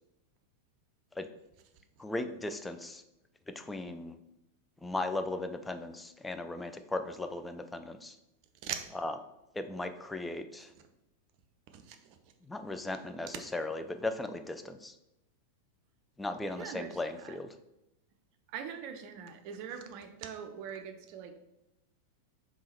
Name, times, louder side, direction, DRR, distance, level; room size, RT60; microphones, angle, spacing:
voice 1, 2.0-3.0 3.6-4.2 4.8-8.2 8.9-9.2 9.5-10.7 12.4-14.9 16.2-17.6, left 2 dB, 10° left, 8 dB, 0.3 m, -37 dB
voice 2, 16.6-16.9 18.5-21.3, right 8 dB, 45° right, 6 dB, 0.5 m, -41 dB
3.6 x 2.9 x 4.3 m, 0.89 s
figure-of-eight pair, 90°, 0 cm